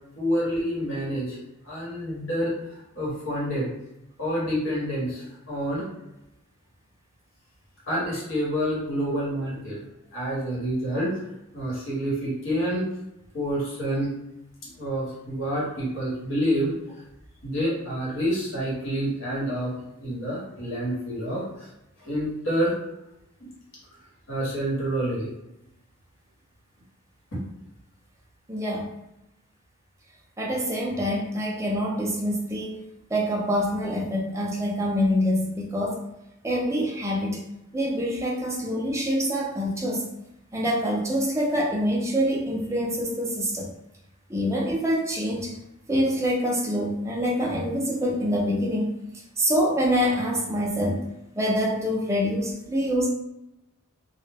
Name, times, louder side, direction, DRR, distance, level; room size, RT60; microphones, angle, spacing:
voice 1, 0.1-1.4 1.6-2.5 2.9-3.7 4.2-5.9 7.9-9.8 10.1-11.1 11.5-12.8 13.3-14.1 14.8-16.9 17.4-19.7 20.0-21.4 22.0-22.7 24.3-25.3, equal, 65° left, -6 dB, 1.1 m, -28 dB
voice 2, 28.5-28.9 30.4-32.8 33.1-36.0 36.4-37.4 37.7-40.0 40.5-43.7 44.3-45.5 45.9-48.9 49.4-51.1 51.4-53.1, equal, 15° right, -3 dB, 0.4 m, -25 dB
2.1 x 2.1 x 3.3 m, 0.86 s
head